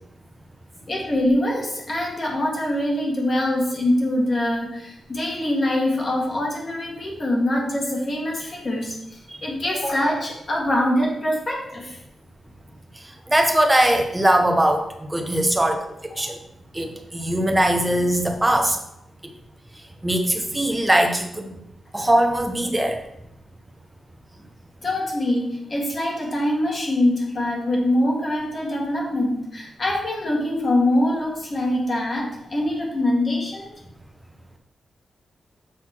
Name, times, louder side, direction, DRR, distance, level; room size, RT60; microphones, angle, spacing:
voice 1, 0.9-12.0 16.1-16.3 24.8-33.7, left 1 dB, 30° left, -2 dB, 1.7 m, -24 dB
voice 2, 13.3-14.8 15.1-15.8 16.2-16.4 16.7-18.8 19.2-19.3 20.0-21.5 21.9-23.0, right 1 dB, 10° right, 3 dB, 0.8 m, -20 dB
7.5 x 4.1 x 4.4 m, 0.81 s
wide cardioid pair, 180°, 0 cm